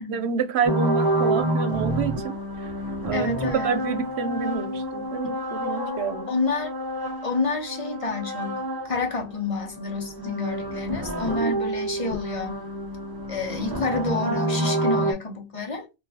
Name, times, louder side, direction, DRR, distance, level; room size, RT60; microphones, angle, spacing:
voice 1, 0.1-2.7 3.0-3.3 3.6-6.3 11.3-11.5, right 6 dB, 80° right, 0.9 m, -28 dB
sound 1, 0.6-9.2 9.5-15.1, right 1 dB, 30° right, 0.5 m, -28 dB
voice 2, 3.1-3.7 6.3-6.7 7.2-12.7 13.3-15.8, left 3 dB, 35° left, 0.9 m, -29 dB
3.9 x 2.6 x 2.7 m
omnidirectional pair, 1.1 m